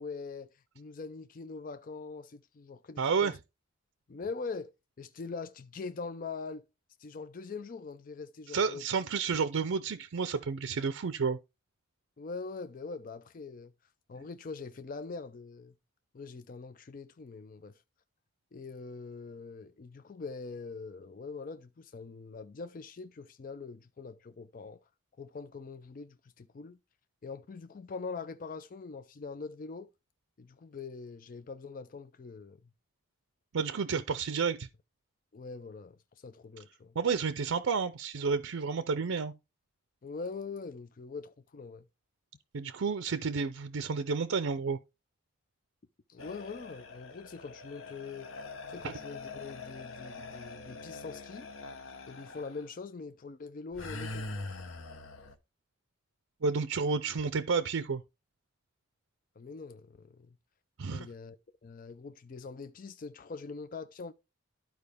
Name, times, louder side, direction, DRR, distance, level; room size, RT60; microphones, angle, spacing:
voice 1, 0.0-3.3 4.1-4.7 5.0-6.6 7.0-8.9 12.2-13.7 14.1-15.7 16.1-17.8 18.5-24.9 25.2-26.8 27.2-29.9 30.4-32.6 33.9-34.0 35.3-37.0 40.0-41.9 46.1-48.3 48.7-51.5 52.1-54.2 59.4-60.4 60.9-61.4 61.6-64.1, left 4 dB, 40° left, 0.4 m, -43 dB
voice 2, 3.0-3.3 8.5-11.4 33.5-34.7 37.0-39.3 42.5-44.8 48.8-48.9 56.4-58.0 60.8-61.1, right 5 dB, 80° right, 0.5 m, -31 dB
sound 1, 46.2-52.7 53.7-55.4, left 3 dB, 80° left, 1.0 m, -44 dB
12.0 x 4.5 x 3.4 m
head